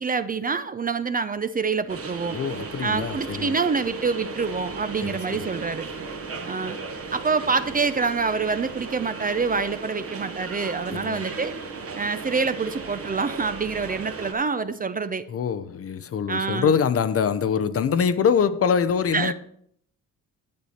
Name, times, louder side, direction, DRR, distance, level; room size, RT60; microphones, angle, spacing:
voice 1, 0.0-2.4 2.8-5.9 6.5-6.8 7.1-11.6 12.0-15.2 16.3-16.7 19.1-19.3, right 4 dB, 25° right, 0.5 m, -26 dB
sound 1, 1.9-14.3, right 4 dB, 40° right, 1.3 m, -36 dB
voice 2, 2.3-3.6 5.0-5.4 10.9-11.2 15.3-19.3, left 6 dB, 40° left, 0.6 m, -24 dB
8.5 x 8.0 x 4.3 m
cardioid pair, 85°, 34 cm